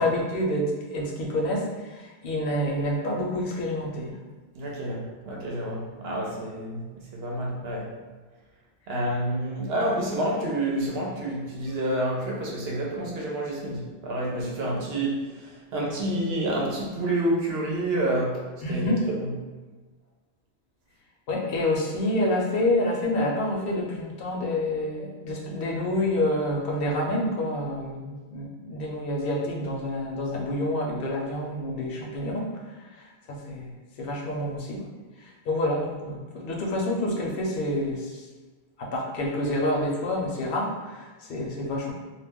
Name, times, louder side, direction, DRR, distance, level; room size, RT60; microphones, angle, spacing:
voice 1, 0.0-4.2 18.6-19.1 21.3-32.5 33.0-34.8 35.2-38.2 38.8-41.9, left 1 dB, 65° left, -1 dB, 0.7 m, -28 dB
voice 2, 4.6-6.9 7.1-7.9 8.9-15.1 15.7-18.4 18.7-19.3, right 1 dB, 70° right, -2 dB, 0.9 m, -28 dB
2.3 x 2.1 x 3.4 m, 1.3 s
omnidirectional pair, 1.1 m